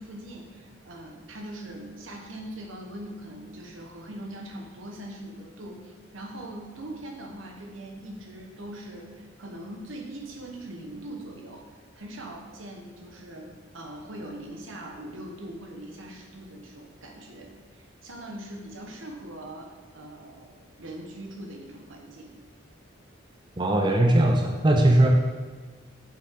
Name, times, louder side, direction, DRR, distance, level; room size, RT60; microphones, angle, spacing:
voice 1, 0.0-11.7 11.9-22.3, right 1 dB, 80° right, 2 dB, 1.0 m, -41 dB
voice 2, 23.6-25.1, right 1 dB, 25° right, 2 dB, 0.4 m, -19 dB
7.3 x 4.6 x 3.7 m, 1.4 s
head